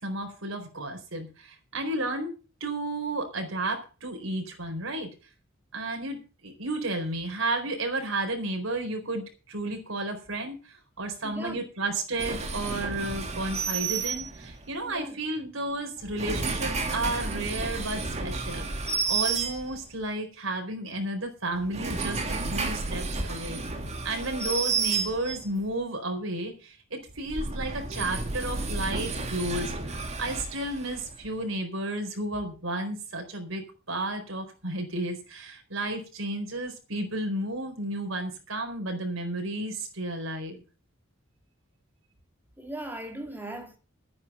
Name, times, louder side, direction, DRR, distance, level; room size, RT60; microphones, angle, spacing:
voice 1, 0.0-2.3 2.6-5.1 5.7-18.6 19.1-23.6 24.0-40.6, right 2 dB, 90° right, 4.4 m, -32 dB
voice 2, 11.2-11.6 14.9-15.2 42.6-43.8, right 1 dB, 10° right, 2.8 m, -38 dB
sound 1, 12.2-14.7 16.0-20.0 21.5-25.6 27.1-31.3, right 4 dB, 35° right, 2.5 m, -31 dB
12.0 x 9.8 x 5.6 m
head